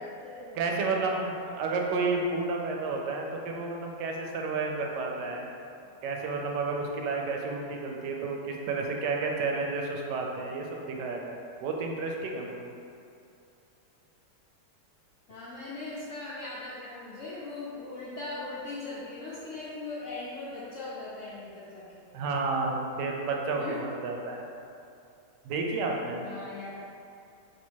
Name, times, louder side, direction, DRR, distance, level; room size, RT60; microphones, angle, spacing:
voice 1, 0.0-0.8 15.3-22.1 23.6-23.8 26.2-26.8, left 2 dB, 75° left, -7 dB, 0.7 m, -40 dB
voice 2, 0.6-5.5 6.0-12.8 22.1-24.4 25.4-26.2, right 3 dB, 80° right, 1 dB, 1.2 m, -31 dB
3.4 x 2.7 x 4.3 m, 2.6 s
omnidirectional pair, 1.8 m